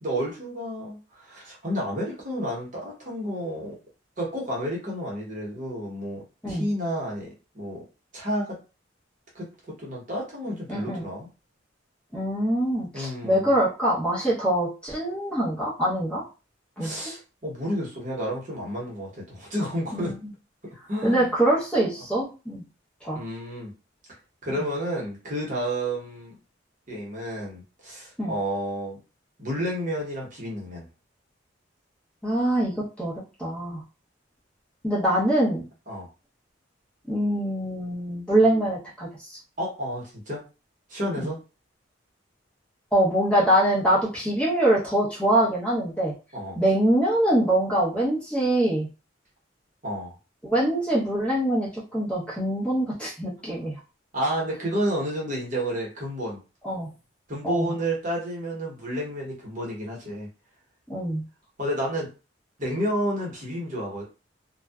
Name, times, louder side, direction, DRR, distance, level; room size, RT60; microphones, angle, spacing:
voice 1, 0.0-3.8 4.2-7.8 8.1-8.6 9.3-11.3 12.9-13.5 16.8-20.1 20.9-21.3 23.1-23.7 24.4-26.3 26.9-29.0 29.4-30.9 35.9-36.1 39.6-40.4 40.9-41.4 46.3-46.6 49.8-50.1 54.1-56.4 57.3-60.3 61.6-62.1 62.6-64.0, equal, 40° right, -3 dB, 1.0 m, -30 dB
voice 2, 10.7-11.1 12.1-16.2 16.8-17.1 19.9-20.1 21.0-22.6 23.0-23.2 24.5-24.6 28.2-28.3 32.2-33.8 34.8-35.6 37.1-39.4 41.2-41.3 42.9-46.1 46.6-48.9 50.4-53.8 56.6-56.9 57.4-57.7 60.9-61.2, right 1 dB, 5° left, -7 dB, 0.8 m, -24 dB
2.6 x 2.3 x 2.3 m, 0.32 s
head